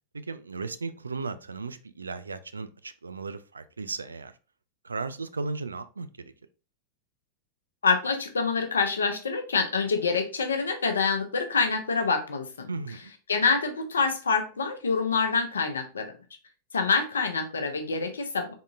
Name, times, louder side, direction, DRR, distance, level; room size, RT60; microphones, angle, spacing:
voice 1, 0.1-4.3 4.8-6.3 12.7-13.1, right 3 dB, 75° right, 0.3 m, -36 dB
voice 2, 7.8-12.7 13.3-16.1 16.7-18.5, left 5 dB, 70° left, 0.7 m, -26 dB
3.7 x 3.6 x 2.4 m
figure-of-eight pair, 90°, 0 cm